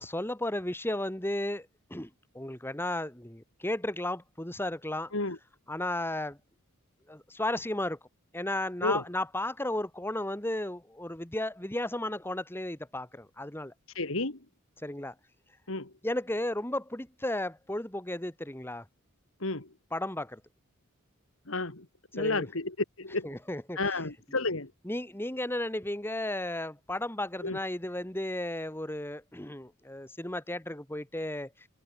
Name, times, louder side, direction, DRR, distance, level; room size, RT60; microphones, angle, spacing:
voice 1, 0.0-2.1 2.3-5.1 5.7-6.4 7.1-8.0 8.3-13.7 14.8-15.1 16.0-18.8 19.9-20.4 22.2-22.5 23.2-23.8 24.8-31.5, left 1 dB, 10° left, 1.7 m, -34 dB
voice 2, 13.9-14.4 15.7-15.9 19.4-19.7 21.5-21.9 22.1-23.3 23.8-24.7 27.4-27.6, left 2 dB, 65° left, 2.4 m, -31 dB
open air
head